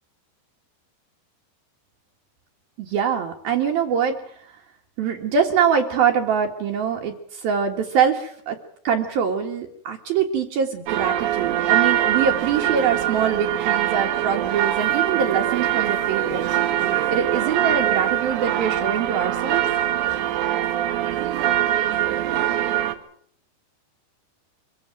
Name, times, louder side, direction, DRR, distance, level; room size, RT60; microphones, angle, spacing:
voice 1, 2.8-4.2 5.0-8.6 8.8-16.5 17.1-19.6, right 7 dB, 65° right, 2 dB, 3.3 m, -23 dB
sound 1, 10.9-22.9, right 13 dB, 80° right, 3.9 m, -23 dB
25.0 x 15.0 x 9.1 m, 0.65 s
omnidirectional pair, 4.9 m